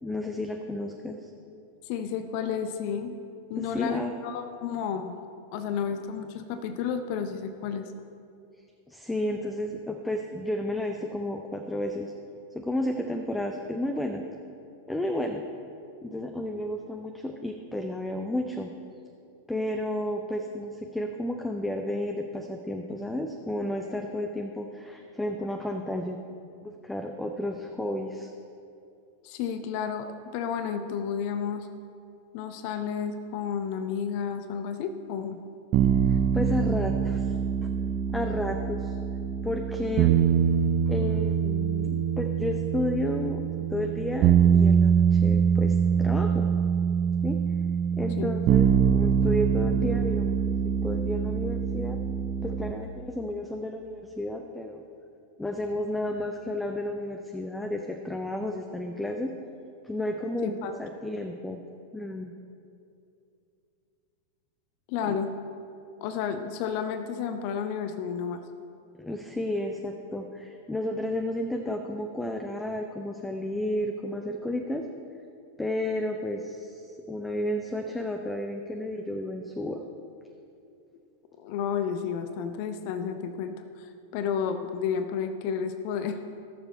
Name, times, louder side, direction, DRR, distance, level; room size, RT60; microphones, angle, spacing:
voice 1, 0.0-1.3 3.6-4.1 8.9-12.1 12.5-14.2 14.9-15.4 16.0-18.7 19.5-26.2 26.6-28.3 36.1-37.4 37.6-37.7 38.1-38.9 39.4-40.2 40.9-43.4 43.7-46.5 47.2-47.4 48.0-52.0 52.4-54.8 55.4-59.3 59.8-61.6 61.9-62.3 65.0-65.2 69.0-74.9 75.6-79.8, left 1 dB, 5° left, 4 dB, 0.7 m, -32 dB
voice 2, 1.8-3.1 3.5-7.9 29.2-30.1 30.3-31.7 32.3-35.4 48.2-48.3 60.4-60.7 64.9-65.3 66.0-68.4 81.4-86.2, left 7 dB, 45° left, 8 dB, 0.6 m, -31 dB
sound 1, 35.7-52.7, right 7 dB, 35° right, 0.7 m, -24 dB
17.0 x 7.0 x 4.4 m, 2.6 s
figure-of-eight pair, 90°, 0 cm